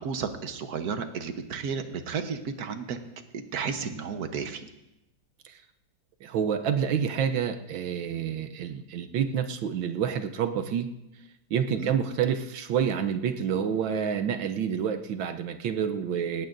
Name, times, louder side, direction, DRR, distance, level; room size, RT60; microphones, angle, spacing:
voice 1, 0.0-3.0 3.3-4.7 11.8-11.9, right 6 dB, 60° right, 8 dB, 1.4 m, -33 dB
voice 2, 6.2-10.9 11.5-16.5, right 8 dB, 80° right, 7 dB, 1.5 m, -28 dB
19.5 x 17.5 x 2.6 m, 0.91 s
omnidirectional pair, 2.1 m